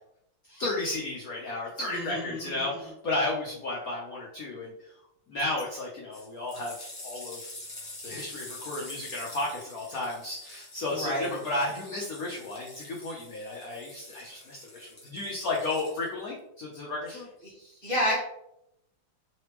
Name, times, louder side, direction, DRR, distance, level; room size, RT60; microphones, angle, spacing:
voice 1, 0.5-4.9 5.3-7.5 8.0-17.9, left 2 dB, 80° left, -3 dB, 0.8 m, -33 dB
voice 2, 1.9-2.8 10.9-11.3 17.1-17.5 17.8-18.2, equal, 75° right, -5 dB, 0.5 m, -31 dB
sound 1, 5.4-5.6 6.1-16.3 17.1-17.2, left 1 dB, 20° left, 0.4 m, -46 dB
3.9 x 3.2 x 3.0 m, 0.81 s
omnidirectional pair, 2.4 m